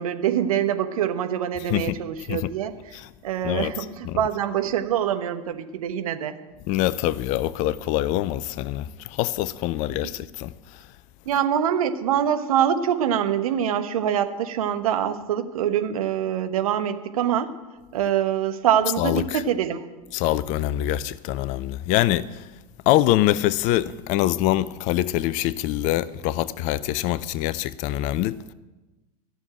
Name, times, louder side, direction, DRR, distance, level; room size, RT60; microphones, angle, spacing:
voice 1, 0.0-3.0 3.2-6.3 11.3-17.5 17.9-19.8, right 9 dB, 60° right, 1.2 m, -24 dB
voice 2, 6.7-8.9 9.2-10.5 19.0-19.4 20.1-22.3 22.9-28.4, left 14 dB, 40° left, 0.5 m, -24 dB
13.5 x 7.0 x 9.8 m
figure-of-eight pair, 85°, 20 cm